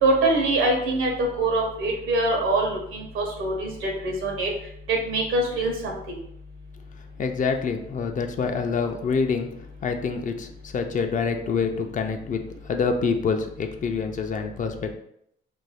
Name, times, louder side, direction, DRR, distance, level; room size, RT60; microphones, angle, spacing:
voice 1, 0.0-1.1 1.4-4.5 4.9-6.2, right 2 dB, 90° right, 1 dB, 0.8 m, -24 dB
voice 2, 7.2-9.5 9.8-14.9, left 5 dB, 40° left, 5 dB, 0.4 m, -26 dB
2.6 x 2.2 x 3.3 m, 0.73 s
cardioid pair, 90°, 20 cm